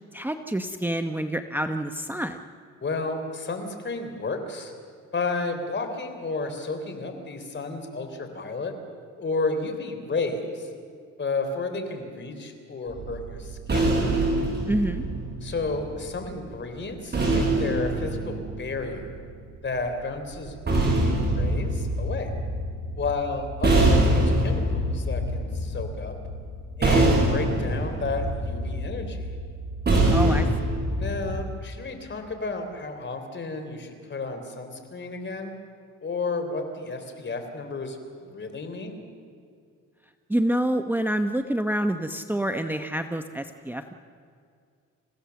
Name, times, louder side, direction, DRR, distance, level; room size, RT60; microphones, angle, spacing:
voice 1, 0.1-2.4 14.7-15.0 30.1-30.5 40.3-43.9, right 1 dB, 5° right, 6 dB, 0.9 m, -27 dB
voice 2, 2.8-4.7 5.1-8.7 9.2-10.7 11.2-13.9 15.4-19.1 19.6-22.3 22.9-26.2 26.8-29.3 31.0-35.6 36.0-39.0, left 3 dB, 40° left, 6 dB, 3.7 m, -32 dB
sound 1, 12.9-16.2 17.1-19.4 20.3-31.4, right 1 dB, 35° right, 7.5 m, -24 dB
28.5 x 16.0 x 7.1 m, 2.2 s
cardioid pair, 90°, 30 cm